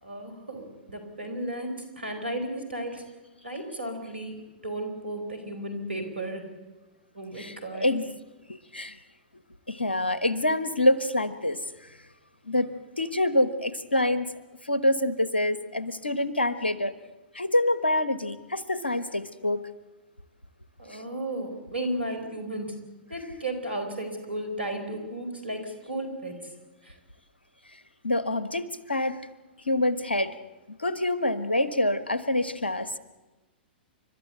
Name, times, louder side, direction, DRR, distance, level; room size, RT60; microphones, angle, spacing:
voice 1, 0.0-3.0 3.4-6.5 7.1-7.9 20.8-22.8 23.1-26.5 26.8-27.0, right 1 dB, 85° right, 6 dB, 4.3 m, -34 dB
voice 2, 7.4-8.0 8.5-9.0 9.7-11.6 12.5-12.7 13.0-14.3 14.7-16.9 17.3-19.6 28.0-29.2 29.7-30.3 30.8-32.9, left 1 dB, 85° left, 14 dB, 1.2 m, -26 dB
29.0 x 13.0 x 8.1 m, 1.1 s
figure-of-eight pair, 105°, 6 cm